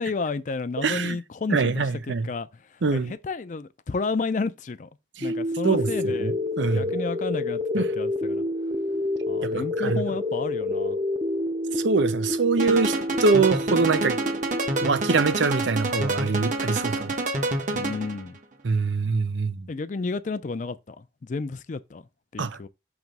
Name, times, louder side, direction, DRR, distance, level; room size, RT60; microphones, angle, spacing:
voice 1, 0.0-4.9 5.2-8.4 9.3-11.0 17.7-18.4 19.7-22.0 22.3-22.7, left 4 dB, 45° left, 0.4 m, -31 dB
voice 2, 0.8-1.2 1.5-2.3 2.8-3.1 5.2-5.3 5.6-6.9 7.7-7.9 9.4-10.0 11.8-14.2 14.8-17.1 18.6-19.7 22.4-22.6, right 4 dB, 90° right, 0.6 m, -24 dB
sound 1, 5.2-15.2, left 1 dB, 25° right, 0.6 m, -28 dB
sound 2, 12.6-18.2, right 2 dB, 45° right, 1.0 m, -28 dB
5.9 x 3.1 x 5.2 m
head